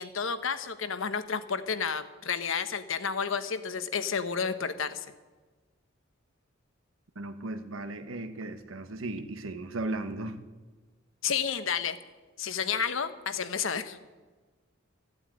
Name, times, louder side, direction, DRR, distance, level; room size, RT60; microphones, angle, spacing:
voice 1, 0.0-5.1 11.2-12.0 12.4-14.0, left 6 dB, 75° left, 11 dB, 1.0 m, -31 dB
voice 2, 7.1-10.4, right 2 dB, 80° right, 9 dB, 1.2 m, -36 dB
14.5 x 8.8 x 8.8 m, 1.3 s
head